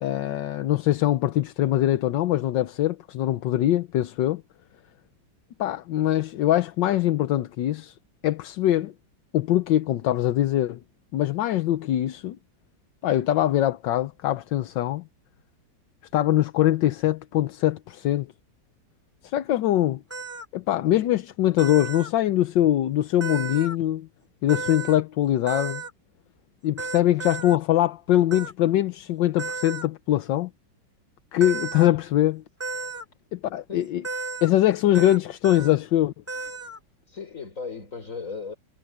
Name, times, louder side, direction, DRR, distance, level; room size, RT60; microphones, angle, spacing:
voice 1, 0.0-4.4 5.6-7.9 8.2-8.9 9.3-10.8 11.1-12.4 13.0-15.0 16.1-18.3 19.2-20.0 20.5-24.1 24.4-25.8 26.6-30.5 31.3-32.4 33.3-34.0 34.4-36.1, left 13 dB, 80° left, 1.5 m, -23 dB
sound 1, 20.1-20.5 21.6-22.1 23.2-23.8 24.5-25.0 25.5-25.9 26.8-27.6 28.3-28.5 29.4-29.9 31.4-31.9 32.6-33.0 34.0-34.5 34.9-35.2 35.4-35.8 36.3-36.8, right 4 dB, 5° right, 2.5 m, -33 dB
voice 2, 37.1-38.5, left 5 dB, 45° left, 4.9 m, -36 dB
omnidirectional pair, 2.0 m